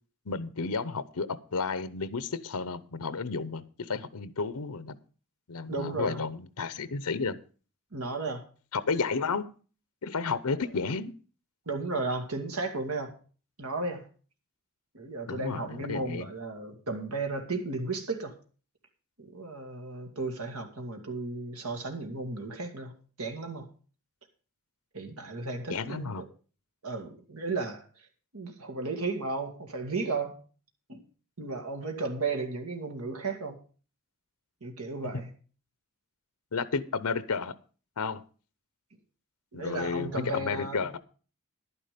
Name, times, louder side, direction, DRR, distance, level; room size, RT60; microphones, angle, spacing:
voice 1, 0.3-1.3 1.5-5.0 5.5-7.4 8.7-9.5 10.0-11.1 15.3-16.3 25.7-26.3 36.5-37.5 38.0-38.2 39.5-41.0, left 4 dB, 85° left, 0.8 m, -32 dB
voice 2, 5.7-6.2 7.9-8.4 11.7-13.1 13.6-14.1 14.9-18.3 19.2-23.7 24.9-26.2 26.8-27.8 28.3-30.4 30.9-31.0 31.4-33.6 34.6-35.3 39.5-40.9, right 3 dB, 75° right, 2.1 m, -34 dB
11.0 x 9.9 x 5.1 m
head